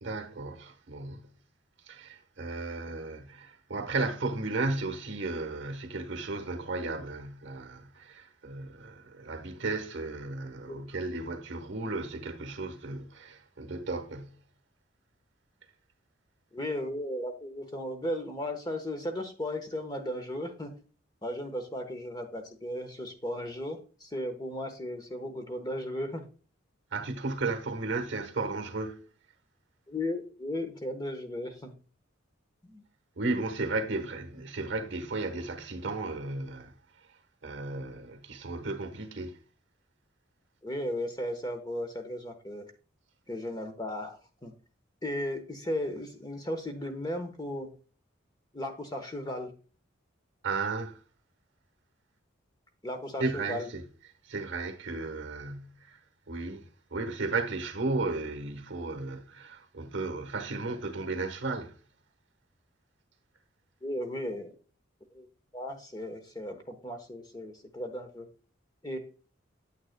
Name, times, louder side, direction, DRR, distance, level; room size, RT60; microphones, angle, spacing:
voice 1, 0.0-1.3 1.9-14.4 26.9-29.0 33.2-36.7 37.4-39.4 50.4-51.0 53.2-53.8 54.2-56.0 56.3-56.6 56.9-61.7, right 3 dB, 65° right, 1.2 m, -34 dB
voice 2, 16.5-20.7 21.2-26.3 29.9-31.7 32.6-32.8 40.6-42.6 43.3-44.5 45.0-47.7 48.5-49.5 52.8-53.7 63.8-64.5 65.1-65.3 65.5-68.3 68.8-69.0, left 1 dB, 20° left, 1.0 m, -35 dB
9.1 x 8.3 x 2.2 m
head